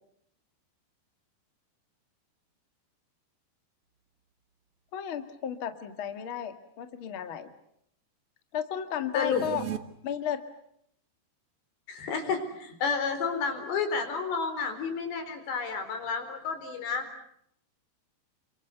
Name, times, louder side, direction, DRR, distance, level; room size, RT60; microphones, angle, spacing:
voice 1, 4.9-7.5 8.5-9.6 10.0-10.4, left 9 dB, 45° left, 8 dB, 1.9 m, -34 dB
voice 2, 9.1-9.5 11.9-17.1, left 5 dB, 80° left, 7 dB, 6.3 m, -31 dB
sound 1, 9.2-9.8, right 11 dB, 75° right, 1.3 m, -36 dB
29.0 x 24.5 x 8.2 m, 0.73 s
omnidirectional pair, 4.9 m